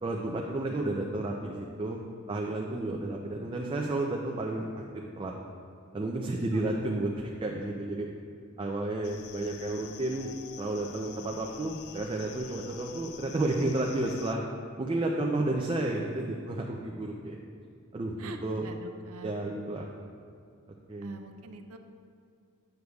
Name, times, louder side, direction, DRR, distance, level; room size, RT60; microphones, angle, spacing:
voice 1, 0.0-2.0 2.3-4.7 4.9-5.3 5.9-8.1 8.6-14.4 14.8-17.4 17.9-18.7 19.2-19.9 20.9-21.1, right 2 dB, 25° right, -1 dB, 0.4 m, -32 dB
sound 1, 9.0-14.4, left 9 dB, 75° left, 0.3 m, -48 dB
voice 2, 18.2-19.3 21.0-21.8, right 4 dB, 85° right, 6 dB, 0.5 m, -45 dB
9.3 x 6.5 x 2.3 m, 2.4 s
head